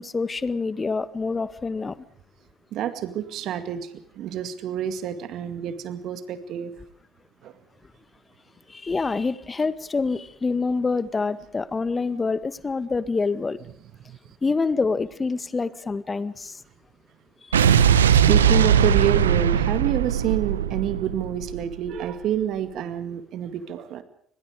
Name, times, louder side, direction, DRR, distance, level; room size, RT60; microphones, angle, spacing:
voice 1, 0.0-2.0 8.7-13.6 14.4-16.6, left 4 dB, 30° left, 14 dB, 1.8 m, -26 dB
voice 2, 2.7-6.7 7.4-7.6 14.1-14.2 18.3-24.0, right 10 dB, 65° right, 11 dB, 2.0 m, -28 dB
Explosion, 17.5-21.9, right 8 dB, 90° right, 1.1 m, -19 dB
29.5 x 21.5 x 5.0 m, 0.63 s
hypercardioid pair, 55°, 0 cm